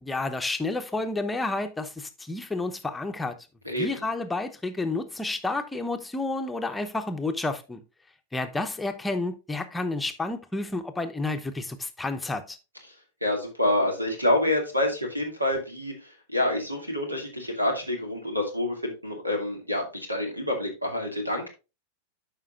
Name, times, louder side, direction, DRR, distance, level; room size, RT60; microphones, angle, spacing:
voice 1, 0.0-3.4 3.8-7.8 8.3-12.6, left 2 dB, 10° left, 0.8 m, -30 dB
voice 2, 3.7-4.0 13.2-15.9 16.3-21.5, left 1 dB, 85° right, 2.2 m, -27 dB
12.5 x 5.1 x 2.4 m
figure-of-eight pair, 90°, 0 cm